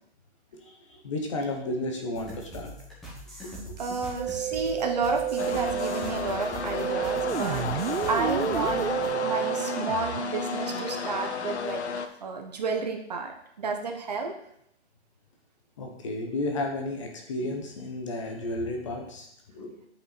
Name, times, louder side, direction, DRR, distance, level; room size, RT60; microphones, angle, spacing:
voice 1, 0.6-2.7 3.4-3.8 15.8-19.3 19.5-19.7, left 2 dB, 30° left, 3 dB, 1.0 m, -33 dB
sound 1, 2.1-9.1, right 1 dB, ahead, 1.4 m, -42 dB
voice 2, 3.4-7.7 8.1-11.8 12.2-14.3, right 4 dB, 40° right, 4 dB, 1.0 m, -31 dB
Musical instrument, 4.2-10.2, right 11 dB, 80° right, 0.5 m, -31 dB
sound 2, 5.4-12.1, left 5 dB, 75° left, 1.0 m, -32 dB
9.6 x 5.5 x 4.2 m, 0.74 s
hypercardioid pair, 165°, 34 cm